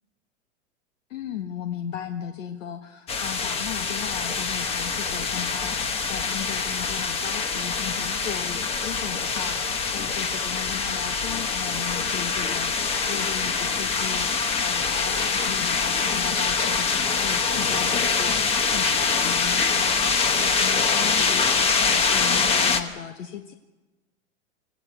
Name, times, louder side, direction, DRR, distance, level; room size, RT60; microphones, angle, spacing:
voice 1, 1.1-23.5, left 9 dB, 70° left, 5 dB, 1.7 m, -36 dB
sound 1, 3.1-22.8, left 5 dB, 15° left, 0.9 m, -24 dB
25.5 x 15.5 x 8.2 m, 1.2 s
supercardioid pair, 155°, 40 cm